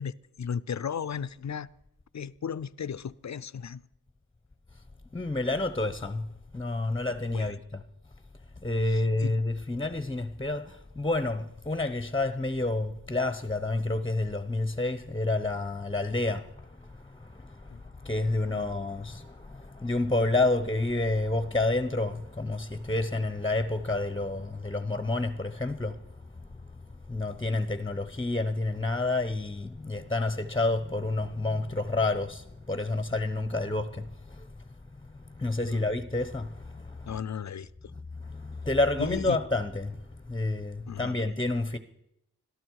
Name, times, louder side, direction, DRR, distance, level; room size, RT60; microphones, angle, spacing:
voice 1, 0.0-1.7 2.1-3.8 7.3-7.5 8.8-9.3 17.7-17.8 18.4-18.7 35.7-35.9 37.1-37.7 39.0-39.4 40.9-41.2, left 7 dB, 50° left, 0.5 m, -35 dB
voice 2, 5.1-6.3 6.5-7.8 8.6-16.5 17.2-17.6 18.0-26.0 27.1-34.4 35.4-37.2 38.2-40.0 40.3-41.8, left 2 dB, 15° left, 0.8 m, -29 dB
21.5 x 13.5 x 4.7 m
wide cardioid pair, 70°, 36 cm